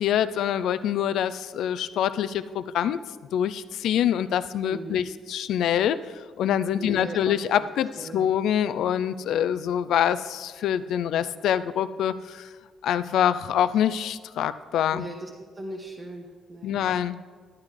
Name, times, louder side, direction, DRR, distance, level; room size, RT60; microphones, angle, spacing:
voice 1, 0.0-3.0 3.3-5.0 5.3-6.0 6.4-12.5 12.8-15.0 16.6-17.2, left 10 dB, 80° left, 14 dB, 0.3 m, -25 dB
voice 2, 4.7-5.0 6.8-7.3 7.6-7.7 8.0-8.3 14.9-16.8, right 2 dB, 30° right, -1 dB, 1.0 m, -38 dB
11.5 x 9.6 x 3.2 m, 1.5 s
cardioid pair, 90°, 0 cm